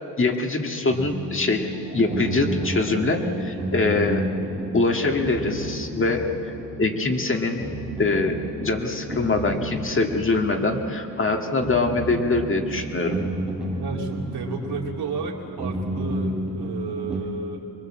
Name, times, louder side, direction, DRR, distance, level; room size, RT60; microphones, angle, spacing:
voice 1, 0.2-1.7 1.9-4.2 4.7-6.5 6.8-7.7 8.0-13.2, left 3 dB, 30° left, 3 dB, 1.9 m, -23 dB
sound 1, 0.9-17.2, right 1 dB, ahead, 5.2 m, -32 dB
sound 2, 1.3-6.3, right 3 dB, 15° right, 2.6 m, -41 dB
voice 2, 13.7-17.7, right 4 dB, 75° right, -1 dB, 2.9 m, -32 dB
25.0 x 22.0 x 7.5 m, 2.7 s
wide cardioid pair, 140°, 40 cm